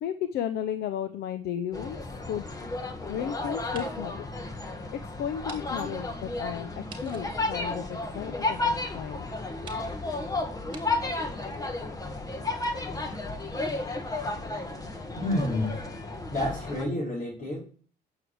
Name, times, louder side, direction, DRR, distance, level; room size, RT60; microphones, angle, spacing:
voice 1, 0.0-2.0 2.3-2.5 3.1-4.2 4.9-9.3, left 9 dB, 75° left, 10 dB, 0.8 m, -34 dB
sound 1, 1.7-16.8, left 2 dB, 20° left, 1.6 m, -33 dB
sound 2, 3.7-4.2 4.6-4.7 5.4-5.6 5.9-6.0 6.9-8.4 9.1-9.2 9.6-9.9 10.7-10.8, right 4 dB, 30° right, 2.5 m, -48 dB
voice 2, 15.1-15.8 16.3-17.6, left 1 dB, 45° left, -5 dB, 5.1 m, -29 dB
9.1 x 7.0 x 4.7 m, 0.42 s
cardioid pair, 110°, 17 cm